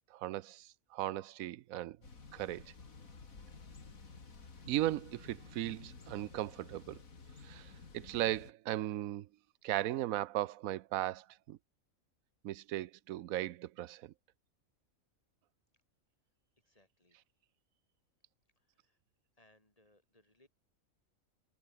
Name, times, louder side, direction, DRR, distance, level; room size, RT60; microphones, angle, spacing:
voice 1, 0.1-2.0 2.3-2.6 4.7-7.0 7.4-7.7 7.9-9.3 9.6-11.6 12.4-14.1, right 14 dB, 85° right, 1.0 m, -37 dB
Thunder / Bicycle, 2.0-8.5, left 4 dB, 80° left, 3.1 m, -53 dB
voice 2, 16.6-17.3 18.6-19.0 19.3-20.5, left 1 dB, 25° left, 5.2 m, -69 dB
omnidirectional pair, 1.4 m